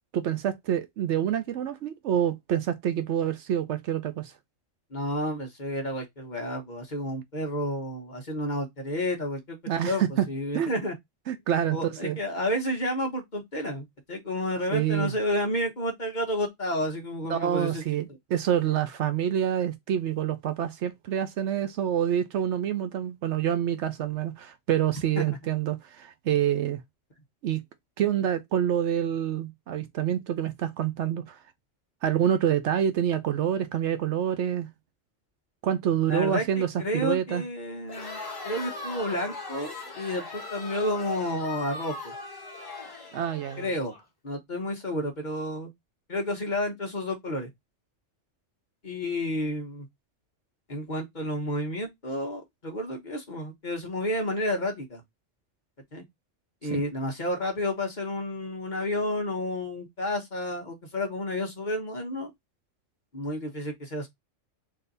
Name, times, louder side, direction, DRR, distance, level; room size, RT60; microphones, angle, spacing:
voice 1, 0.1-4.3 9.7-10.3 10.5-10.7 11.3-12.2 14.7-15.1 17.3-26.8 27.4-27.6 28.0-31.4 32.0-34.7 35.6-37.4 43.1-43.7 56.7-56.8, right 10 dB, 70° right, 0.8 m, -27 dB
voice 2, 4.9-9.6 9.8-11.0 11.7-17.8 25.2-25.4 36.1-42.1 43.6-43.9 44.2-45.7 46.1-47.5 48.8-49.9 50.7-55.0 55.9-56.0 56.6-62.3 63.1-64.1, left 1 dB, 40° left, 1.1 m, -31 dB
Crowd, 37.8-44.0, left 3 dB, 20° left, 1.3 m, -40 dB
3.8 x 2.8 x 3.8 m
omnidirectional pair, 1.3 m